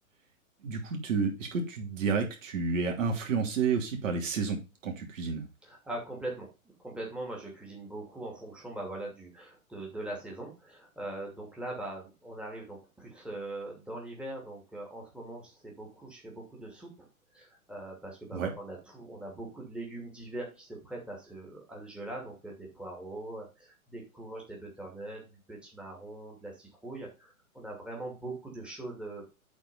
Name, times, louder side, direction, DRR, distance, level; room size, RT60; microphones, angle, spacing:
voice 1, 0.6-4.6 4.8-5.5 18.3-18.5, right 5 dB, 60° right, 3 dB, 3.1 m, -30 dB
voice 2, 5.6-6.5 6.8-29.2, right 2 dB, ahead, -2 dB, 2.5 m, -41 dB
8.5 x 4.6 x 5.4 m, 0.29 s
hypercardioid pair, 130°, 43 cm